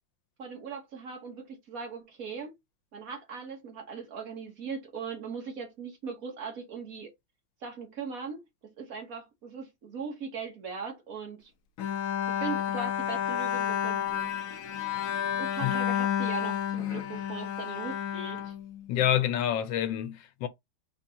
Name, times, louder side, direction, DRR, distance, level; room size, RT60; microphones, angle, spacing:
voice 1, 0.4-2.5 2.9-7.1 7.6-8.4 8.8-11.5 12.3-14.4 15.4-18.5, right 5 dB, 55° right, 1.3 m, -39 dB
Bowed string instrument, 11.8-19.2, left 10 dB, 70° left, 0.8 m, -31 dB
voice 2, 18.9-20.5, left 10 dB, 90° left, 1.4 m, -27 dB
4.3 x 2.6 x 2.7 m
omnidirectional pair, 2.0 m